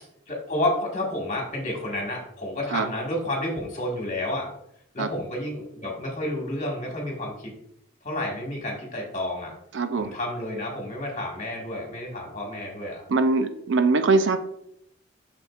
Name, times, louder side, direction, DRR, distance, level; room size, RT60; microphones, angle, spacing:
voice 1, 0.3-4.5 4.9-7.5 8.0-9.5 10.0-13.0, left 1 dB, 35° left, -1 dB, 1.7 m, -30 dB
voice 2, 9.7-10.1 13.1-14.4, right 3 dB, 60° right, 10 dB, 0.4 m, -22 dB
7.6 x 6.3 x 2.4 m, 0.74 s
head